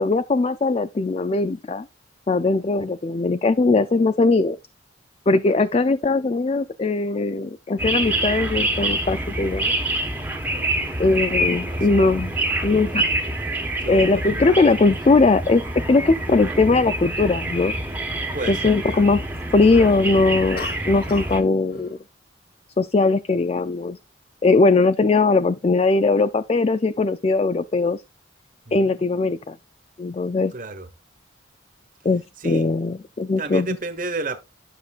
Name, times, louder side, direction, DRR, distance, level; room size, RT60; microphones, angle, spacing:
voice 1, 0.0-1.9 2.3-4.6 5.3-9.6 11.0-12.3 12.6-13.1 13.9-15.6 15.9-17.8 18.5-19.2 19.5-22.0 22.8-24.0 24.4-28.0 28.7-29.6 30.0-30.5 32.0-33.7, left 3 dB, 30° left, 0.3 m, -20 dB
sound 1, 7.8-21.4, right 1 dB, 10° right, 1.2 m, -26 dB
voice 2, 10.4-10.7 11.2-12.0 13.8-14.7 18.3-19.1 28.7-29.0 30.5-30.9 32.4-32.7 33.4-34.4, right 3 dB, 45° right, 1.2 m, -33 dB
sound 2, 20.6-21.4 21.7-22.0, left 4 dB, 50° left, 1.2 m, -36 dB
12.0 x 6.6 x 2.4 m
head